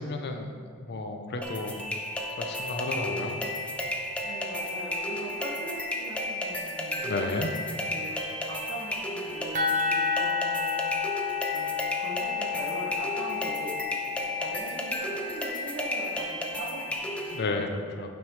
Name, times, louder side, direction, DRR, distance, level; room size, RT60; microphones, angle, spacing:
voice 1, 0.0-1.9 2.4-3.4 7.0-7.5 17.3-18.1, left 2 dB, 50° left, 5 dB, 0.6 m, -32 dB
sound 1, 1.4-17.4, left 1 dB, 5° left, 0.5 m, -33 dB
voice 2, 4.2-7.2 7.9-10.8 11.5-11.7 12.0-13.7 14.1-17.7, right 1 dB, 65° right, -5 dB, 1.7 m, -41 dB
sound 2, 9.5-15.1, left 6 dB, 35° right, 0.7 m, -31 dB
8.9 x 5.3 x 3.2 m, 2.1 s
head